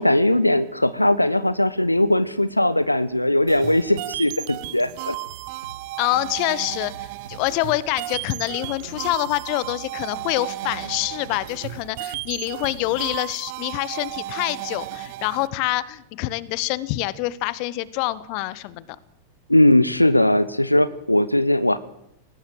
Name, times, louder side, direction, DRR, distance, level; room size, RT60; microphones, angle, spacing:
voice 1, 0.0-5.2 19.5-21.8, left 1 dB, 85° left, 16 dB, 0.9 m, -19 dB
sound 1, 3.5-15.5, right 19 dB, 50° right, 0.7 m, -34 dB
sound 2, 5.3-13.2, right 5 dB, 75° right, 2.2 m, -45 dB
voice 2, 6.0-18.8, left 17 dB, 45° left, 20 dB, 1.1 m, -26 dB
20.5 x 18.5 x 7.7 m, 0.75 s
figure-of-eight pair, 90°, 0 cm